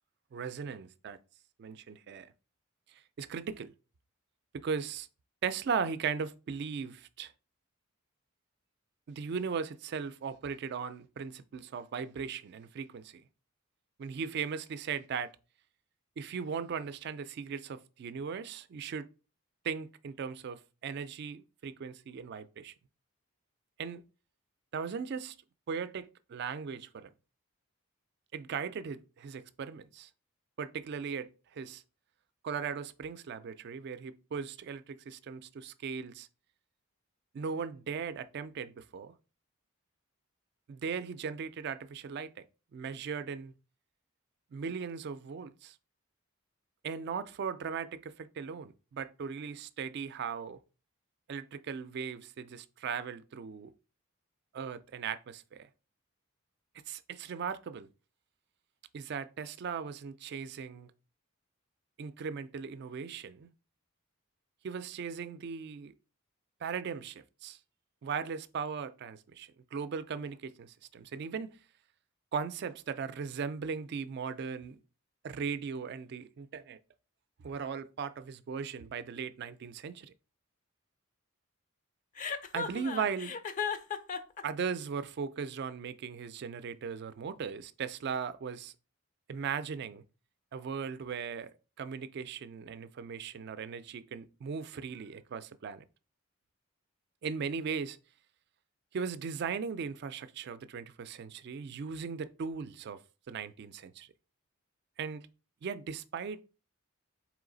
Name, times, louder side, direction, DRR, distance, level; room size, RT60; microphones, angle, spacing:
voice 1, 0.3-1.2 1.6-2.3 2.9-3.7 4.5-5.1 5.4-7.3 9.1-13.2 14.0-15.3 16.2-19.1 19.6-22.7 23.8-24.0 24.7-25.4 25.7-27.1 28.3-30.1 30.6-31.8 32.4-36.3 37.3-39.1 40.7-42.4 42.7-43.5 44.5-45.8 46.8-50.6 51.3-53.7 54.5-55.7 56.9-57.9 58.9-60.9 62.0-63.5 64.6-65.9 66.6-67.6 68.0-71.6 72.3-74.8 75.2-76.8 77.4-80.1 82.5-83.4 84.4-88.7 89.3-90.0 90.5-95.8 97.2-98.0 98.9-103.0 103.3-104.1 105.0-105.3 105.6-106.4, right 6 dB, 50° right, 0.3 m, -38 dB
Chuckle chortle, 82.2-84.4, left 6 dB, 35° left, 0.4 m, -35 dB
3.9 x 3.1 x 3.8 m
head